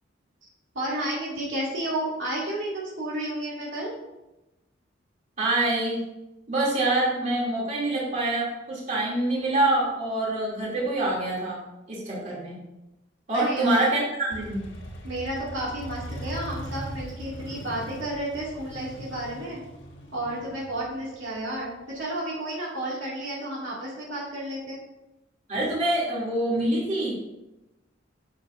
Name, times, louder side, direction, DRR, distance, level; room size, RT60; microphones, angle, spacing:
voice 1, 0.7-3.9 13.3-13.9 15.0-19.6 20.1-24.8, right 1 dB, 80° right, -6 dB, 2.4 m, -32 dB
voice 2, 5.4-6.0 6.5-11.6 11.9-12.6 13.3-14.6 25.5-27.1, right 2 dB, 40° right, -6 dB, 3.0 m, -25 dB
Motorcycle, 14.3-22.0, equal, 90° left, 1.3 m, -40 dB
9.7 x 7.0 x 2.7 m, 0.96 s
head